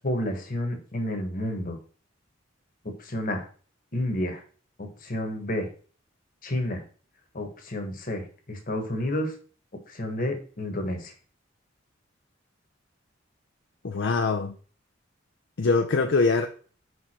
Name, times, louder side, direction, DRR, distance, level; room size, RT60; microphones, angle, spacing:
voice 1, 0.0-1.8 2.8-3.5 3.9-4.4 4.8-5.7 6.4-6.8 7.3-9.3 9.9-11.1, left 1 dB, 45° left, 5 dB, 1.3 m, -30 dB
voice 2, 13.8-14.6 15.6-16.5, left 4 dB, 65° left, 5 dB, 0.5 m, -23 dB
5.3 x 4.8 x 4.3 m, 0.40 s
head